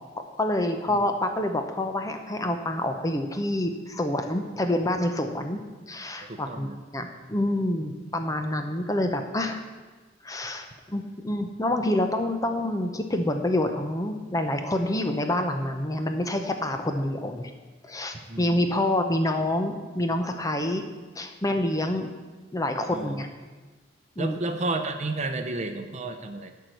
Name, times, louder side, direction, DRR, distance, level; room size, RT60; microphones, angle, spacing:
voice 1, 0.4-5.6 5.9-6.7 6.9-9.6 10.2-17.5 17.8-20.8 21.2-22.1 22.5-23.3 24.2-24.4, left 1 dB, 20° left, 5 dB, 0.7 m, -27 dB
voice 2, 6.2-6.8 18.3-18.9 22.9-23.2 24.2-26.5, right 2 dB, 40° right, 7 dB, 0.8 m, -32 dB
11.0 x 4.7 x 7.8 m, 1.3 s
head